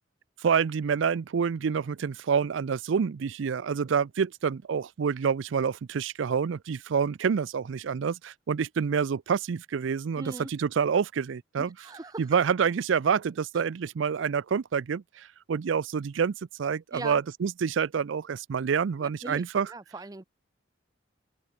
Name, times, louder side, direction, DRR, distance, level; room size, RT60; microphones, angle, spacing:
voice 1, 0.4-11.7 12.2-19.7, right 6 dB, 80° right, 0.4 m, -27 dB
voice 2, 10.2-10.5 11.6-12.3 16.9-17.2 19.0-20.2, right 2 dB, 20° right, 0.6 m, -40 dB
open air
head